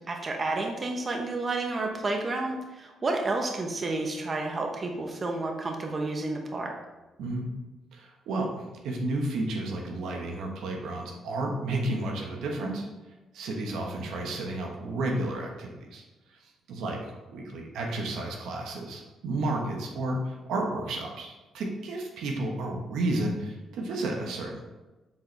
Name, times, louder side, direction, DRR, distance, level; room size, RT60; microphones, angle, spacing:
voice 1, 0.1-6.7, right 2 dB, 35° right, 2 dB, 0.9 m, -30 dB
voice 2, 7.2-7.5 7.9-12.9 13.3-16.0 16.4-24.6, right 2 dB, 80° right, 1 dB, 1.0 m, -32 dB
7.4 x 4.1 x 3.3 m, 1.1 s
cardioid pair, 90°, 0 cm